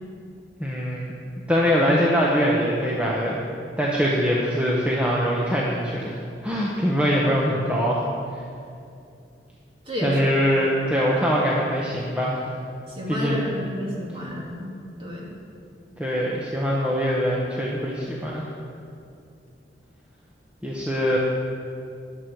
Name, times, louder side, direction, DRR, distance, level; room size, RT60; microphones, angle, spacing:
voice 1, 0.6-1.1 1.5-3.4 3.8-6.2 6.4-8.1 10.0-12.4 13.1-13.5 16.0-18.4 20.6-21.2, equal, 5° right, -5 dB, 1.0 m, -23 dB
voice 2, 9.8-10.2 12.9-14.7 15.0-15.3, equal, 30° right, -4 dB, 2.5 m, -30 dB
13.5 x 9.4 x 4.7 m, 2.4 s
head